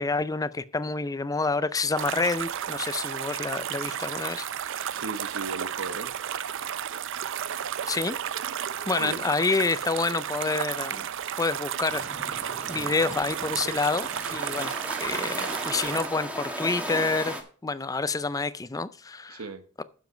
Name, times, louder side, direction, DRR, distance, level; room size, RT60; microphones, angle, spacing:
voice 1, 0.0-5.0 7.9-8.2 8.9-11.1 11.4-14.7 15.0-17.3 17.6-19.4 19.8-19.9, left 3 dB, 15° left, 0.5 m, -28 dB
sound 1, 2.0-16.1, right 9 dB, 60° right, 0.5 m, -33 dB
voice 2, 3.6-3.9 4.9-6.2 8.9-9.2 19.3-19.6, right 3 dB, 85° right, 1.1 m, -37 dB
sound 2, 11.9-17.4, right 1 dB, 5° right, 1.4 m, -36 dB
9.3 x 7.1 x 5.1 m
head